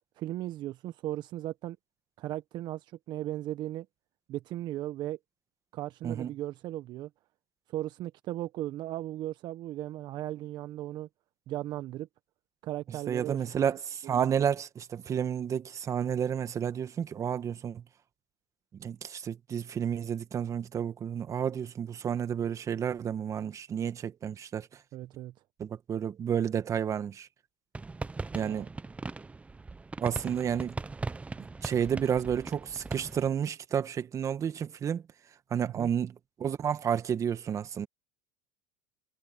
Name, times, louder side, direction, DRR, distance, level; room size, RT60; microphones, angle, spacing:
voice 1, 0.2-1.8 2.2-3.9 4.3-5.2 5.7-7.1 7.7-11.1 11.5-12.1 12.6-13.7 14.0-14.2 24.9-25.3 28.4-28.7 35.8-35.9, right 14 dB, 50° right, 1.2 m, -37 dB
voice 2, 12.9-17.8 18.8-24.7 25.6-27.3 28.3-28.7 30.0-30.8 31.4-35.0 35.5-37.9, right 8 dB, 35° right, 1.8 m, -31 dB
sound 1, 27.7-33.3, right 3 dB, 15° right, 0.8 m, -39 dB
hypercardioid pair, 90°, 9 cm